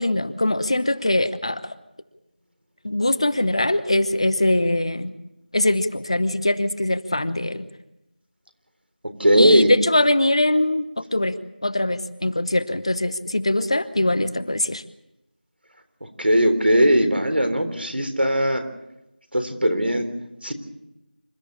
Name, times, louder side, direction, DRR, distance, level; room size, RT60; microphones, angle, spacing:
voice 1, 0.0-1.8 2.8-5.1 5.5-7.7 9.4-14.8, left 1 dB, 35° left, 13 dB, 0.9 m, -22 dB
voice 2, 9.0-9.7 16.0-18.6 19.3-20.1 20.4-20.5, equal, 85° right, 8 dB, 3.8 m, -19 dB
27.0 x 13.5 x 8.7 m, 0.93 s
figure-of-eight pair, 175°, 5 cm